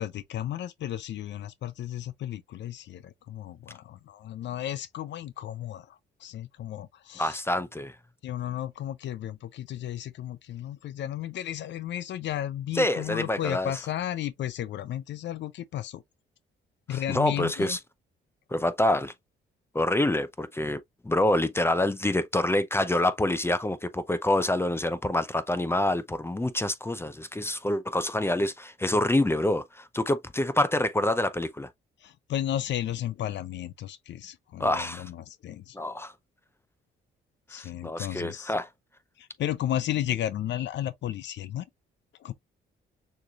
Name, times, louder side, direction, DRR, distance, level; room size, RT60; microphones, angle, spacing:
voice 1, 0.0-7.4 8.2-16.0 16.9-17.8 32.0-35.8 37.5-38.5 39.2-41.6 42.2-42.3, left 12 dB, 65° left, 0.5 m, -34 dB
voice 2, 7.2-8.0 12.7-13.8 16.9-17.8 18.5-19.1 19.7-31.7 34.6-35.1 35.7-36.1 37.5-38.7, left 1 dB, 10° left, 0.6 m, -27 dB
6.4 x 3.1 x 2.4 m
cardioid pair, 90°, 20 cm